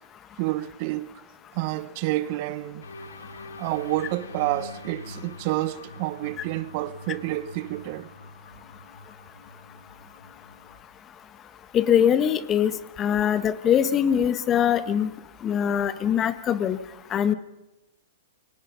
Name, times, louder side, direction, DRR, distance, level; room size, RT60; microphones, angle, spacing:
voice 1, 0.4-1.2 1.5-2.9 3.6-8.1, right 16 dB, 50° right, 1.1 m, -29 dB
sound 1, 2.8-10.8, left 2 dB, 90° left, 2.2 m, -44 dB
voice 2, 11.7-12.7 13.0-15.1 15.4-16.8 17.1-17.3, left 9 dB, 25° left, 1.6 m, -22 dB
28.5 x 23.0 x 5.5 m
hypercardioid pair, 115°, 0 cm